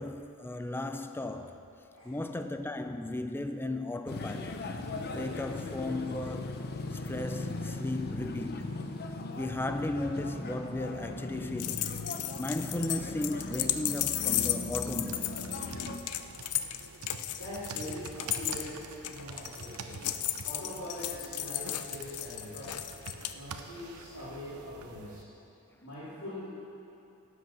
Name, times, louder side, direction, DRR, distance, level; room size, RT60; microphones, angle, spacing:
voice 1, 0.0-1.6 2.0-4.6 5.1-8.8 9.3-12.0 12.4-15.3, left 1 dB, 10° left, 0.4 m, -36 dB
voice 2, 1.9-2.2 17.3-18.7 19.0-20.0 20.4-22.7 23.3-25.2 25.7-26.5, left 1 dB, 65° left, 3.5 m, -42 dB
sound 1, 4.1-16.0, left 2 dB, 45° left, 0.7 m, -38 dB
sound 2, 11.6-23.3, left 13 dB, 80° left, 0.6 m, -34 dB
sound 3, 15.1-25.2, right 4 dB, 75° right, 0.8 m, -46 dB
17.0 x 8.0 x 6.0 m
head